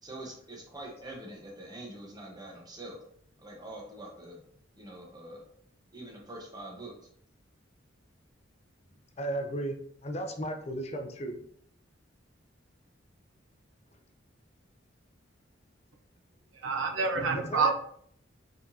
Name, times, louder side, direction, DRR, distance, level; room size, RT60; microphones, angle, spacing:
voice 1, 0.0-3.0 3.4-4.4 4.8-5.4 5.9-6.9, right 1 dB, 20° right, -1 dB, 1.0 m, -44 dB
voice 2, 9.2-9.8 10.0-11.4 17.4-17.7, right 1 dB, 35° left, 5 dB, 0.5 m, -34 dB
voice 3, 16.5-17.7, right 4 dB, 80° right, 4 dB, 0.6 m, -27 dB
4.9 x 3.7 x 2.7 m, 0.65 s
head